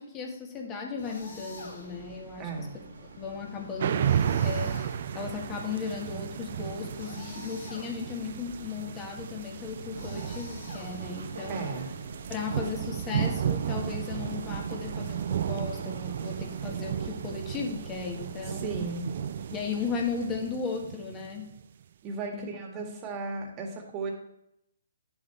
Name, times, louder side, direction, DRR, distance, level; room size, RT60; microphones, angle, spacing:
voice 1, 0.0-2.7 3.2-11.7 12.3-18.9 19.5-21.5 22.3-22.5 22.7-22.9, left 5 dB, 20° left, 1 dB, 1.6 m, -36 dB
sound 1, 1.0-2.1 3.9-5.4 6.9-8.2 9.9-11.3, left 2 dB, 80° left, 3.5 m, -46 dB
sound 2, 1.1-20.3, right 2 dB, 70° right, 1.8 m, -47 dB
voice 2, 2.4-2.8 11.5-11.9 18.5-19.2 22.0-24.1, right 4 dB, 25° right, 1 dB, 1.9 m, -35 dB
sound 3, 3.8-21.6, right 9 dB, 50° right, 0.4 m, -33 dB
9.6 x 7.1 x 3.4 m, 0.80 s
hypercardioid pair, 150°, 0 cm